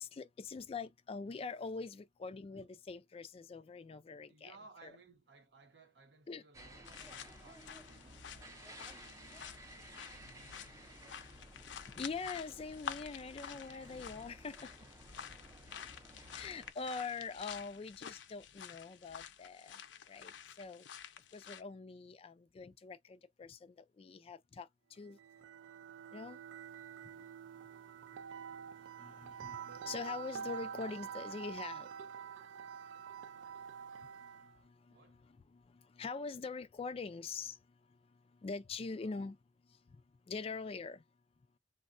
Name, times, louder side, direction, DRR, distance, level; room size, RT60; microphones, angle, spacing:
voice 1, 0.0-4.6 4.8-4.9 6.3-6.4 12.0-14.7 16.3-19.8 20.1-20.8 21.3-24.7 25.0-25.2 26.1-26.4 29.0-31.9 34.4-34.7 35.1-35.6 35.9-37.6 38.4-39.4 40.3-41.0, left 4 dB, 35° left, 0.3 m, -44 dB
voice 2, 4.3-11.4 27.7-27.8 34.9-35.3 39.0-39.1, right 3 dB, 70° right, 0.8 m, -62 dB
sound 1, 6.5-16.7, right 1 dB, 20° right, 0.5 m, -55 dB
sound 2, 6.8-21.6, left 7 dB, 90° left, 0.5 m, -50 dB
sound 3, 25.1-34.6, right 7 dB, 90° right, 0.3 m, -47 dB
3.4 x 2.1 x 2.4 m
head